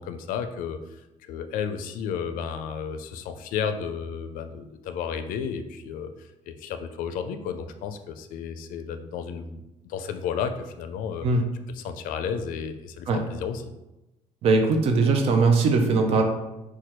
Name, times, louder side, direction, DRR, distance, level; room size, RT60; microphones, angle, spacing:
voice 1, 0.0-11.3 11.7-13.7, left 7 dB, 80° left, 8 dB, 0.4 m, -33 dB
voice 2, 14.4-16.2, right 3 dB, 45° right, 4 dB, 0.5 m, -20 dB
4.4 x 2.3 x 4.3 m, 0.97 s
cardioid pair, 165°, 14 cm